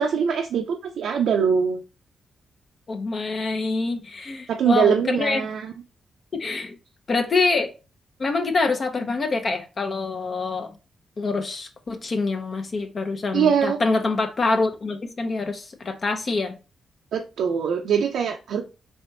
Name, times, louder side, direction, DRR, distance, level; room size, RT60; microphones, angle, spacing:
voice 1, 0.0-1.8 4.5-5.7 13.3-13.8 17.1-18.6, right 7 dB, 85° right, 0.5 m, -22 dB
voice 2, 2.9-5.5 6.3-6.8 7.1-7.7 8.2-10.7 11.2-16.5, left 3 dB, 50° left, 0.7 m, -25 dB
3.4 x 3.4 x 2.7 m
cardioid pair, 70°, 0 cm